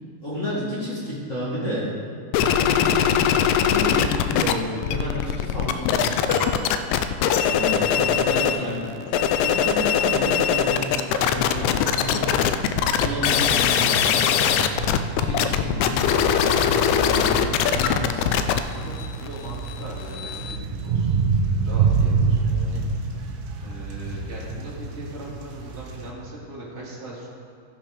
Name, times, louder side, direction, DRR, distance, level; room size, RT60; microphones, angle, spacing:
voice 1, 0.2-1.9 2.5-6.5 7.4-8.9 9.3-12.3 13.0-19.0, equal, 30° left, -7 dB, 1.8 m, -31 dB
sound 1, 2.3-4.5 4.8-8.6 9.0-20.6, left 8 dB, 80° left, 1.7 m, -21 dB
sound 2, 6.3-7.7 8.4-8.5, right 3 dB, 65° right, 3.4 m, -37 dB
voice 2, 7.9-8.5 19.2-21.2 21.5-22.8 23.6-27.3, right 1 dB, 25° right, -5 dB, 2.1 m, -40 dB
sound 3, 12.3-26.1, right 5 dB, 80° right, 2.6 m, -28 dB
16.0 x 6.0 x 5.1 m, 2.3 s
omnidirectional pair, 3.7 m